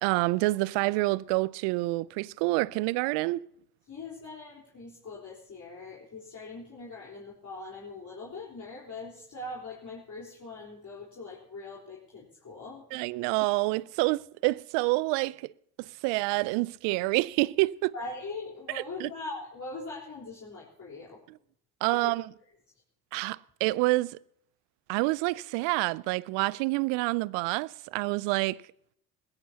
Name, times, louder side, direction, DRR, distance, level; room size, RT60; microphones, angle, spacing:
voice 1, 0.0-3.4 12.9-15.5 15.8-17.9 19.0-19.1 21.8-22.2 23.1-24.2 24.9-28.6, right 22 dB, 70° right, 0.6 m, -27 dB
voice 2, 3.9-13.0 17.9-21.2 21.9-22.1, left 3 dB, 40° left, 4.1 m, -42 dB
20.0 x 16.5 x 2.8 m
hypercardioid pair, 55°, 46 cm